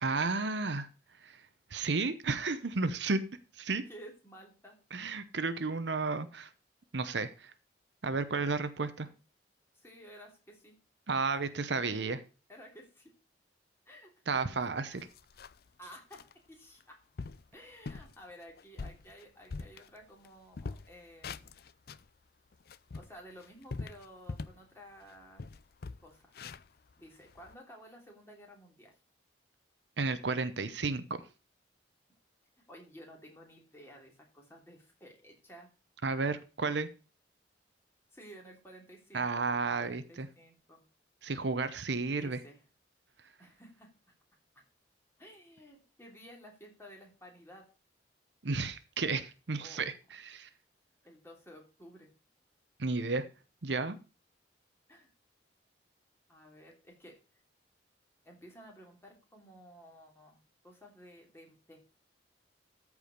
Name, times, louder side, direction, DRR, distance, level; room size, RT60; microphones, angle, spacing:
voice 1, 0.0-0.9 1.2-1.4 1.7-3.2 3.6-3.8 4.9-6.5 6.9-7.5 8.0-9.1 11.1-12.2 14.3-15.1 30.0-31.3 36.0-36.9 39.1-40.3 41.2-42.4 48.4-50.5 52.8-53.2 53.6-54.0, right 3 dB, 70° right, 12 dB, 0.8 m, -32 dB
voice 2, 3.7-4.8 8.8-9.1 9.7-10.7 11.3-11.5 12.5-13.1 13.9-14.7 15.8-16.2 16.5-17.0 17.5-21.6 22.9-25.5 26.0-26.5 27.0-28.9 32.7-35.7 38.1-40.8 42.1-42.6 43.4-43.9 45.2-47.6 49.6-49.8 51.0-52.1 54.9-55.1 56.3-57.2 58.2-60.4 60.6-61.8, equal, 15° left, 0 dB, 3.0 m, -53 dB
sound 1, 14.4-14.5 14.9-15.7 16.1-16.3 16.8-16.9 17.2-17.5 17.9-18.1 18.6-20.3 20.5-22.1 22.5-24.7 25.0-25.1 25.4-27.5, left 4 dB, 55° left, 0.5 m, -43 dB
13.5 x 4.9 x 5.3 m, 0.34 s
head